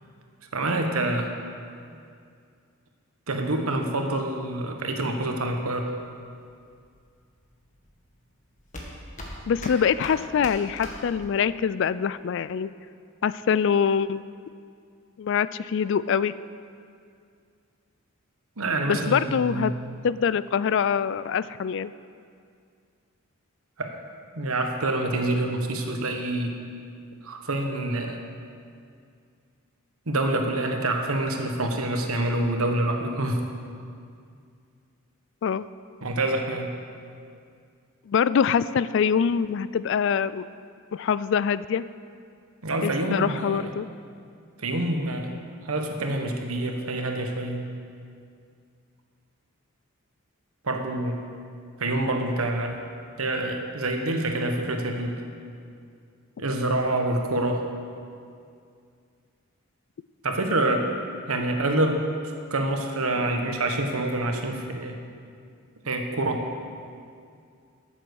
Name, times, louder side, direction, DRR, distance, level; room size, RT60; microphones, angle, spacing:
voice 1, 0.5-1.3 3.3-5.9 18.6-19.7 23.8-24.0 24.3-26.6 27.2-28.2 30.1-33.4 36.0-36.7 42.6-43.6 44.6-45.3 45.6-47.6 50.6-51.2 51.8-52.8 53.2-55.3 56.4-57.6 60.2-60.9 61.3-65.0 65.8-66.4, right 2 dB, 85° right, 4 dB, 1.3 m, -26 dB
sound 1, 5.7-11.6, left 1 dB, 35° left, 1.6 m, -41 dB
voice 2, 9.5-12.7 13.2-14.2 15.2-16.3 18.9-19.8 20.0-21.9 35.4-35.7 38.1-40.5 40.9-41.8 42.8-43.9 63.1-63.2, left 7 dB, 55° left, 16 dB, 0.3 m, -24 dB
13.5 x 7.5 x 6.3 m, 2.3 s
head